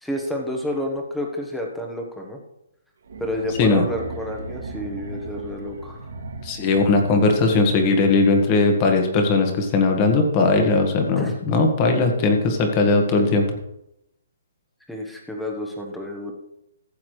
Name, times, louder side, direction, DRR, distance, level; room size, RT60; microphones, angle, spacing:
voice 1, 0.0-2.4 3.2-6.1 11.2-11.3 14.9-16.3, left 1 dB, ahead, 1 dB, 1.2 m, -30 dB
sound 1, 3.0-8.3, right 3 dB, 85° right, 2.4 m, -37 dB
voice 2, 6.4-13.5, left 3 dB, 25° left, 4 dB, 1.6 m, -19 dB
15.0 x 7.0 x 3.2 m, 0.81 s
hypercardioid pair, 160°, 0 cm